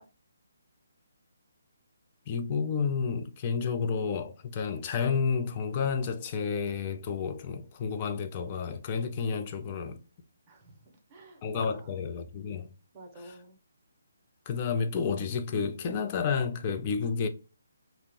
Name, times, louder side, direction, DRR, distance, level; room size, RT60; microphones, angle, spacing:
voice 1, 2.3-10.0 11.4-12.7 14.5-17.3, left 6 dB, 30° left, 0.4 m, -30 dB
voice 2, 10.5-12.0 12.9-13.6, right 2 dB, 20° right, 0.8 m, -50 dB
2.7 x 2.0 x 3.6 m
figure-of-eight pair, 145°, 0 cm